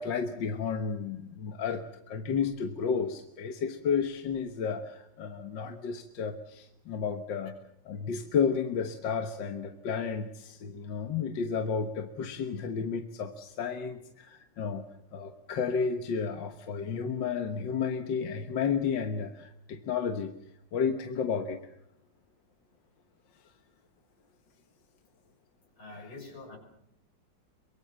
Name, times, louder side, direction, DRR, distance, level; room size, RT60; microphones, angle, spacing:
voice 1, 0.0-7.5 7.9-14.9 15.1-20.3 20.7-21.6 26.0-26.1, left 6 dB, 65° left, 7 dB, 1.9 m, -32 dB
voice 2, 25.8-26.6, left 2 dB, 85° left, 4 dB, 6.1 m, -45 dB
23.5 x 22.5 x 7.4 m, 0.79 s
omnidirectional pair, 2.2 m